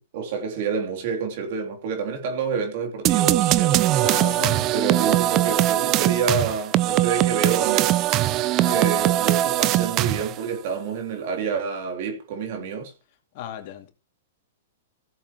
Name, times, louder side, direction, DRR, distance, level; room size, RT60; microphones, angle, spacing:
voice 1, 0.1-3.8 4.7-8.0 8.7-12.9, right 5 dB, 55° right, 3.3 m, -28 dB
sound 1, 3.0-10.4, right 14 dB, 35° right, 0.6 m, -21 dB
voice 2, 4.0-5.2 8.5-9.1 13.3-13.9, left 10 dB, 50° left, 2.6 m, -36 dB
16.5 x 7.6 x 3.1 m
hypercardioid pair, 125°, 0 cm